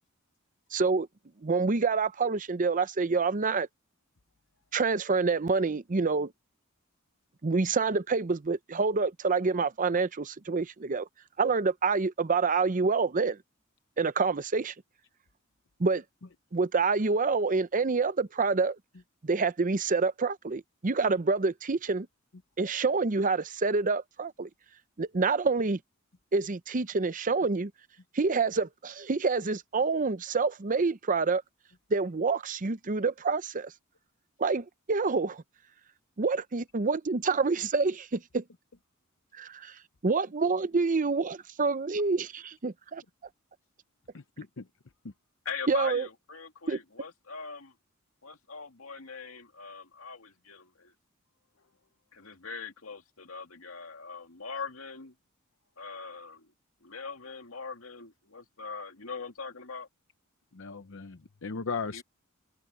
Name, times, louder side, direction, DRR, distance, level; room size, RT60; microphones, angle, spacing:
voice 1, 0.7-1.1 1.4-3.7 4.7-6.3 7.4-11.1 11.4-13.4 14.0-14.7 15.8-16.0 16.5-18.8 19.2-22.1 22.6-24.5 25.0-25.8 26.3-27.7 28.1-31.4 31.9-33.7 34.4-35.4 36.2-38.4 39.3-39.7 40.0-43.0 45.7-46.1 46.7-46.8, right 4 dB, 40° right, 0.7 m, -27 dB
voice 2, 44.1-44.6 60.5-62.0, left 5 dB, 65° left, 0.8 m, -37 dB
voice 3, 45.4-47.7 48.2-50.9 52.1-55.1 55.8-56.5 56.8-59.9 61.9-62.0, left 5 dB, 85° left, 2.4 m, -41 dB
open air
head